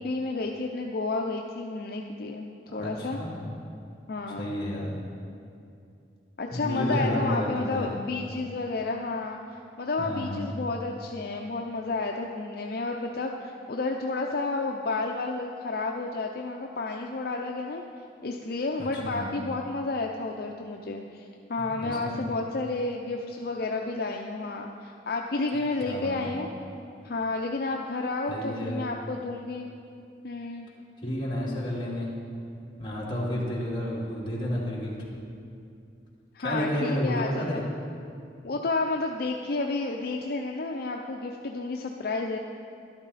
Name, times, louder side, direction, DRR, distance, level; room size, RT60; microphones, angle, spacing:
voice 1, 0.0-2.5 2.7-3.2 4.1-4.6 6.4-17.8 18.2-26.5 27.0-29.7 30.2-30.7 36.3-37.6 38.4-42.4, left 3 dB, 60° left, 2 dB, 0.5 m, -31 dB
voice 2, 2.7-3.4 4.4-5.0 6.5-8.0 10.0-10.5 18.8-19.3 21.6-22.2 25.8-26.4 28.3-28.8 31.0-32.1 32.8-34.9 36.4-37.6, left 1 dB, 30° left, -6 dB, 2.5 m, -31 dB
12.5 x 11.5 x 4.1 m, 2.5 s
head